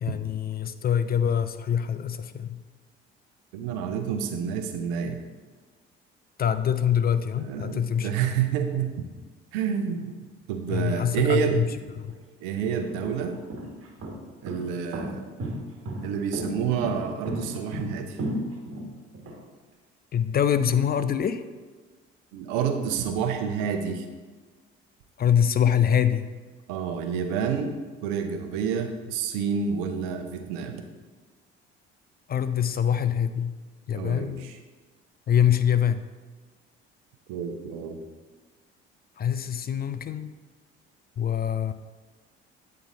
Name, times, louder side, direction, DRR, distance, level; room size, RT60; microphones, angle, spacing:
voice 1, 0.0-2.6 6.4-8.1 10.7-11.7 12.0-12.1 20.1-21.4 25.2-26.3 32.3-33.6 33.9-34.5 35.3-36.1 39.2-40.3 41.2-41.7, left 8 dB, 30° left, 11 dB, 0.4 m, -24 dB
voice 2, 3.5-5.2 7.4-8.9 9.5-10.2 10.5-11.6 12.4-13.4 14.4-15.2 16.0-18.2 22.3-24.1 26.7-27.7 28.0-30.8 33.9-34.6 37.3-38.0, right 7 dB, 70° right, 6 dB, 0.8 m, -28 dB
sound 1, 12.0-12.1 12.8-19.3, right 1 dB, 45° right, 1.4 m, -33 dB
8.4 x 3.9 x 3.8 m, 1.4 s
hypercardioid pair, 55°, 31 cm